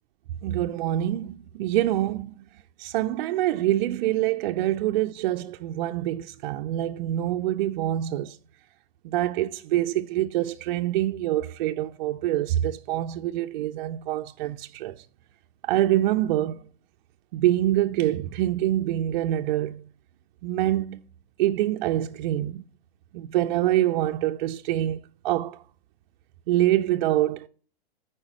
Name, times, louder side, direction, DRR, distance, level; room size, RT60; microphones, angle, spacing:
voice 1, 0.4-2.4 2.8-8.4 9.0-15.0 15.6-16.6 17.3-19.8 20.4-21.0 21.4-22.6 23.1-25.6 26.5-27.5, right 13 dB, 50° right, 0.4 m, -25 dB
8.6 x 4.8 x 6.0 m
hypercardioid pair, 110°, 32 cm